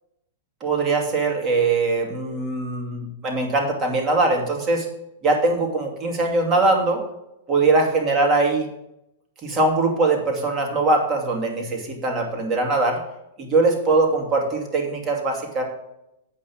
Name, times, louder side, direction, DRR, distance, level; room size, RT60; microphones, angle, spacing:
voice 1, 0.6-4.9 5.2-7.0 7.5-8.7 9.4-13.0 13.4-15.6, right 3 dB, 30° right, 1 dB, 2.5 m, -21 dB
8.3 x 5.6 x 7.2 m, 0.85 s
hypercardioid pair, 120°, 0 cm